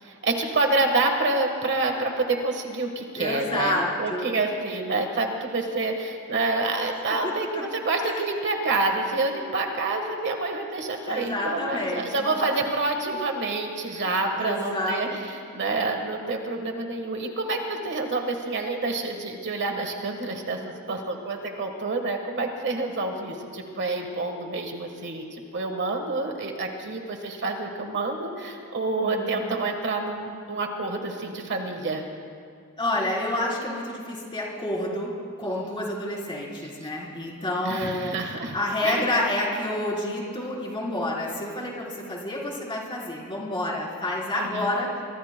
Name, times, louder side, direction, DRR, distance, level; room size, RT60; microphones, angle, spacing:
voice 1, 0.0-32.1 37.6-38.6 38.8-39.0 44.3-44.7, right 3 dB, 55° right, 4 dB, 1.4 m, -28 dB
voice 2, 3.2-4.3 7.2-7.3 8.1-8.2 11.1-12.4 13.9-14.1 14.4-15.1 29.0-29.4 32.8-35.1 35.4-44.9, left 1 dB, 25° left, -4 dB, 3.7 m, -29 dB
24.5 x 23.5 x 2.2 m, 2.3 s
head